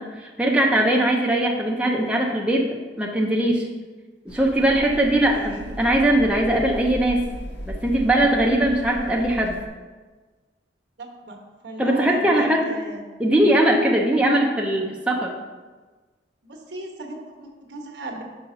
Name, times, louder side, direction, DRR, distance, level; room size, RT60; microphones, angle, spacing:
voice 1, 0.0-2.7 3.0-3.7 4.3-7.3 7.7-9.5 11.8-12.7 13.2-15.3, right 1 dB, 5° right, -2 dB, 0.6 m, -20 dB
sound 1, 4.3-9.7, equal, 85° left, 1.2 m, -36 dB
voice 2, 11.0-11.4 11.6-13.0 16.4-18.2, right 2 dB, 70° right, 1 dB, 1.1 m, -36 dB
5.5 x 5.0 x 5.6 m, 1.3 s
head